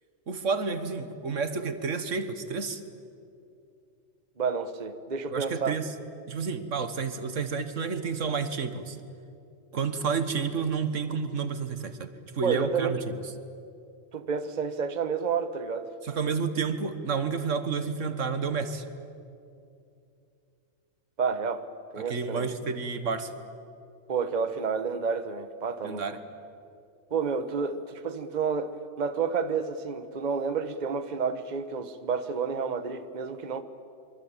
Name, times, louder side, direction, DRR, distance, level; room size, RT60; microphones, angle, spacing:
voice 1, 0.3-2.8 5.3-5.9 6.3-9.0 9.7-12.1 12.3-13.1 16.0-18.9 22.0-23.3 25.8-26.2, right 5 dB, 85° right, 10 dB, 1.8 m, -30 dB
voice 2, 4.4-5.8 12.4-13.2 14.1-15.9 21.2-21.7 21.9-22.5 24.1-26.0 27.1-33.6, right 5 dB, 40° right, 10 dB, 1.2 m, -30 dB
24.5 x 24.5 x 8.9 m, 2.6 s
omnidirectional pair, 1.3 m